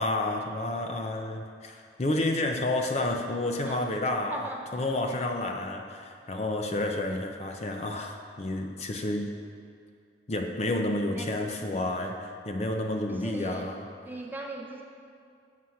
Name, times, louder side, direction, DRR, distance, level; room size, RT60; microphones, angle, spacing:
voice 1, 0.0-4.4 4.7-9.3 10.3-13.8, left 2 dB, 35° left, 3 dB, 0.5 m, -30 dB
voice 2, 4.3-4.9 11.1-11.4 13.1-13.7 14.0-14.8, right 2 dB, 10° right, 0 dB, 0.6 m, -39 dB
7.7 x 5.9 x 5.7 m, 2.4 s
head